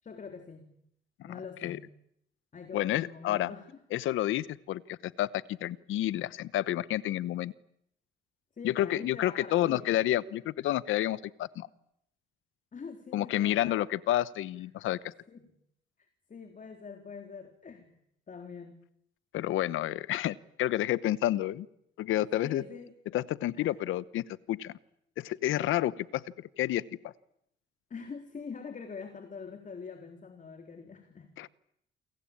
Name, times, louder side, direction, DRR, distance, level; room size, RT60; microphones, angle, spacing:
voice 1, 0.0-0.7 1.2-1.9 2.5-3.8 8.5-9.9 12.7-13.8 15.3-15.5 16.0-18.0 18.3-18.8 22.3-22.9 23.5-23.8 27.9-31.3, left 5 dB, 40° left, 6 dB, 3.8 m, -44 dB
voice 2, 2.7-3.5 3.9-7.5 8.6-11.7 13.1-15.1 19.3-21.7 22.0-22.6 23.1-24.7 25.2-27.1 31.4-31.5, left 14 dB, 85° left, 18 dB, 1.1 m, -30 dB
29.0 x 23.0 x 8.7 m, 0.75 s
cardioid pair, 90°, 20 cm